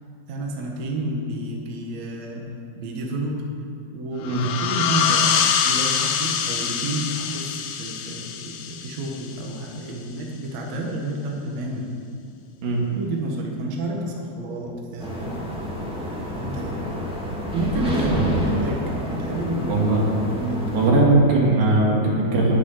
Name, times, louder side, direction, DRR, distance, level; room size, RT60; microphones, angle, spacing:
voice 1, 0.3-2.4 2.8-3.3 3.9-5.3 5.6-12.0 13.0-15.7 16.3-17.0 17.5-18.8 19.1-19.9 20.3-21.0 21.5-21.6, right 1 dB, 55° right, -1 dB, 2.3 m, -30 dB
sound 1, 4.2-9.6, left 7 dB, 75° left, 2.2 m, -24 dB
sound 2, 15.0-20.9, equal, ahead, 1.5 m, -28 dB
voice 2, 19.7-20.1 20.7-22.6, right 2 dB, 80° right, -3 dB, 4.5 m, -19 dB
10.0 x 9.6 x 9.4 m, 2.4 s
omnidirectional pair, 4.6 m